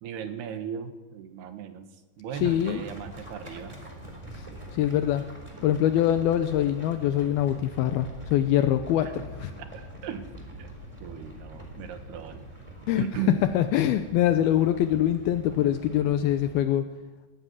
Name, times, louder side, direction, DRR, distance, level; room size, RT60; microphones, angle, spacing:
voice 1, 0.0-3.8 9.0-9.3 9.6-10.7 11.0-12.4 13.0-13.5, right 8 dB, 65° right, 7 dB, 3.3 m, -37 dB
sound 1, 2.3-16.6, equal, 10° right, 3.2 m, -44 dB
voice 2, 2.4-2.8 4.7-5.2 5.6-9.1 9.4-9.5 12.9-13.1 13.5-16.8, left 11 dB, 80° left, 8 dB, 2.3 m, -24 dB
22.5 x 12.0 x 9.6 m, 1.2 s
omnidirectional pair, 5.3 m